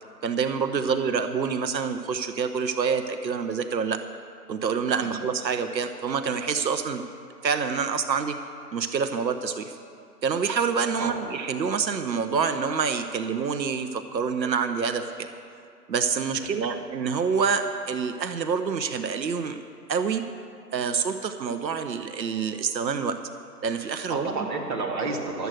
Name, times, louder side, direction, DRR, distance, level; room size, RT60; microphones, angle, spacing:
voice 1, 0.2-4.0 4.5-7.0 7.4-8.4 8.7-9.7 10.2-15.3 15.9-19.6 19.9-20.3 20.7-23.2 23.6-24.3, right 6 dB, 85° right, 8 dB, 1.0 m, -27 dB
voice 2, 24.1-25.5, right 3 dB, 30° right, -3 dB, 2.0 m, -31 dB
12.5 x 8.1 x 7.7 m, 2.4 s
hypercardioid pair, 160°, 50 cm